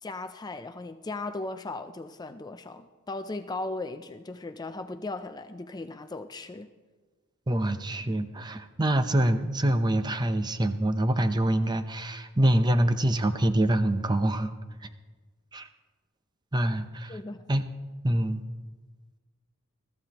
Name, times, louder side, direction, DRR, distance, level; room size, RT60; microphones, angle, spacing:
voice 1, 0.0-6.7 17.1-17.5, left 2 dB, 20° left, 9 dB, 0.4 m, -37 dB
voice 2, 7.5-14.5 14.8-14.9 15.5-15.7 16.5-17.1 17.5-17.7 18.0-18.4, right 1 dB, 20° right, 9 dB, 0.6 m, -25 dB
22.0 x 14.0 x 3.0 m, 1.4 s
head